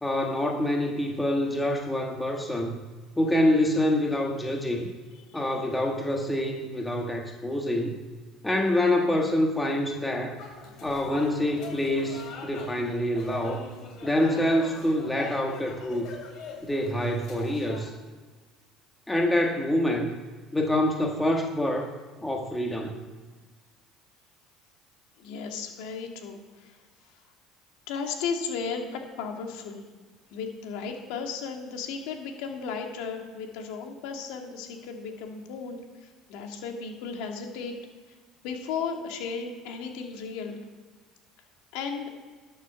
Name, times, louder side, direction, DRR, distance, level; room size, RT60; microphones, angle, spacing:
voice 1, 0.0-2.8 3.2-4.9 5.3-8.0 8.4-10.4 10.8-13.7 14.0-16.1 16.6-17.9 19.1-20.1 20.5-21.9 22.2-23.0, left 1 dB, 10° left, 1 dB, 1.5 m, -26 dB
sound 1, 10.3-17.8, left 4 dB, 60° left, 4.0 m, -43 dB
voice 2, 25.2-26.8 27.9-29.8 30.3-37.8 38.4-40.6 41.7-42.1, left 5 dB, 80° left, 3 dB, 2.0 m, -35 dB
11.5 x 6.4 x 6.8 m, 1.4 s
supercardioid pair, 100°, 0 cm